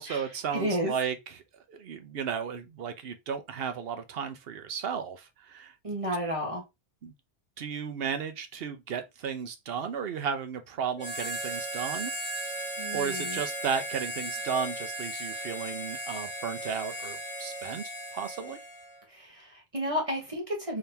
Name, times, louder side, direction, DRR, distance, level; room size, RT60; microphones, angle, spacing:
voice 1, 0.0-1.4 1.7-5.7 7.0-7.1 7.6-12.1 12.9-18.6, right 6 dB, 65° right, 0.9 m, -34 dB
voice 2, 0.5-0.9 5.8-6.6 12.8-13.4 19.1-20.8, equal, 30° right, 1.3 m, -32 dB
Harmonica, 11.0-19.0, right 1 dB, 10° left, 1.1 m, -36 dB
3.9 x 3.4 x 2.7 m
omnidirectional pair, 1.1 m